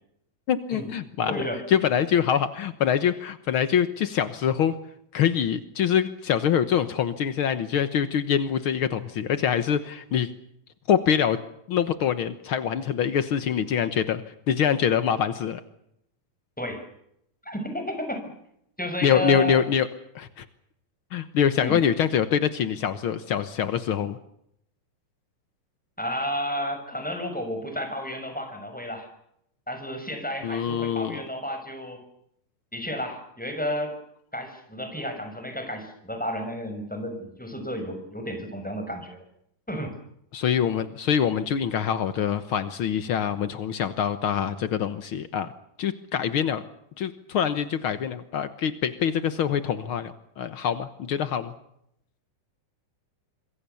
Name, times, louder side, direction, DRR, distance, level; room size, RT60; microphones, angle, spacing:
voice 1, 0.5-1.4 1.7-4.7 5.1-10.3 10.9-11.4 11.7-14.2 14.5-15.6 19.0-19.9 20.1-20.4 21.1-24.2 30.4-31.2 40.3-45.5 45.8-46.6 47.0-51.5, left 8 dB, 80° left, 11 dB, 1.1 m, -24 dB
voice 2, 1.3-1.7 16.6-16.9 17.4-18.3 18.8-19.6 21.6-21.8 26.0-29.1 29.7-32.0 32.7-34.0 34.3-39.2 39.7-40.0, equal, ahead, 6 dB, 6.0 m, -32 dB
26.5 x 22.5 x 7.0 m, 0.75 s
omnidirectional pair, 4.1 m